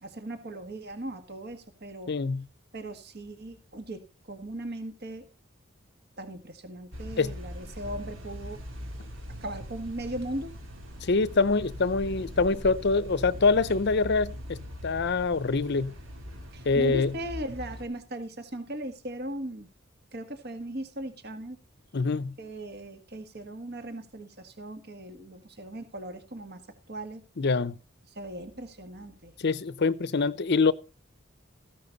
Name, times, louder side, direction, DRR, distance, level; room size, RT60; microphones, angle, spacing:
voice 1, 0.0-2.1 2.7-4.0 4.3-5.2 6.2-8.6 9.4-10.5 16.5-19.7 20.1-21.6 22.4-26.6 26.9-27.2 28.2-29.3, right 1 dB, 55° right, 1.8 m, -38 dB
voice 2, 2.1-2.5 7.2-7.4 11.0-15.9 16.7-17.1 21.9-22.3 27.4-27.8 29.4-30.7, left 4 dB, 55° left, 0.7 m, -25 dB
sound 1, 6.9-17.8, equal, 70° right, 3.3 m, -41 dB
14.5 x 11.0 x 4.0 m
head